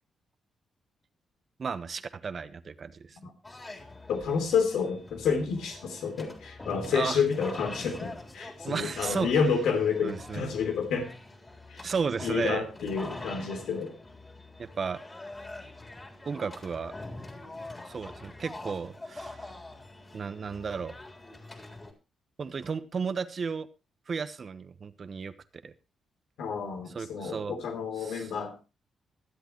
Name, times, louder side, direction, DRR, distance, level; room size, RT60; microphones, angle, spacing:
voice 1, 1.6-3.2 6.9-7.2 8.6-9.3 10.0-10.5 11.8-12.7 14.6-15.0 16.2-16.9 17.8-19.5 20.1-20.9 22.4-23.7 24.1-25.3 25.6-25.7 26.9-27.6 28.0-28.3, right 5 dB, 50° right, 13 dB, 1.1 m, -33 dB
sound 1, 3.4-21.9, left 2 dB, 25° left, 3.7 m, -44 dB
voice 2, 4.1-11.1 11.7-11.9 12.2-13.9 26.4-28.6, left 6 dB, 80° left, 5 dB, 3.1 m, -29 dB
24.5 x 8.2 x 3.0 m, 0.28 s
supercardioid pair, 55°, 0 cm